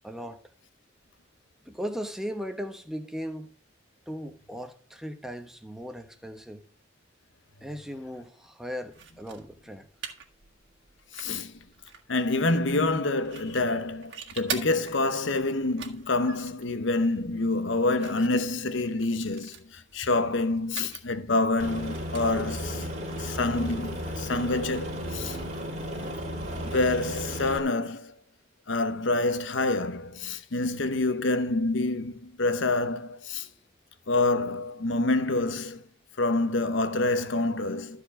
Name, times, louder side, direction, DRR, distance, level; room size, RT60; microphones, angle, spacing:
voice 1, 0.0-0.4 1.7-3.5 4.1-6.6 7.6-9.9, equal, ahead, 1.0 m, -37 dB
sound 1, 8.9-24.0, right 7 dB, 65° right, 1.7 m, -45 dB
voice 2, 11.1-11.6 12.1-22.9 23.2-25.4 26.6-28.1 28.7-33.5 34.1-35.8 36.2-38.0, left 2 dB, 75° left, 0.9 m, -27 dB
Aircraft, 21.6-27.6, equal, 35° right, 2.3 m, -34 dB
13.5 x 4.8 x 4.9 m
head